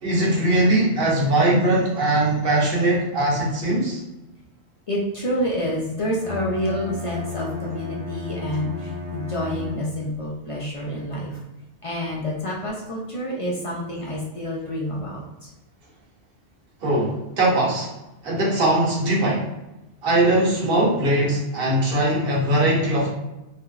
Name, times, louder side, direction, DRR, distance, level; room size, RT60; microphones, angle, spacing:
voice 1, 0.0-4.0 16.8-17.9 18.2-19.5 20.0-23.1, right 1 dB, 60° right, -3 dB, 1.0 m, -20 dB
voice 2, 4.9-11.4 11.8-15.5, equal, 40° left, -4 dB, 0.5 m, -28 dB
Bowed string instrument, 6.2-10.2, left 3 dB, 80° right, 1.0 m, -33 dB
2.9 x 2.5 x 2.4 m, 0.97 s
omnidirectional pair, 1.1 m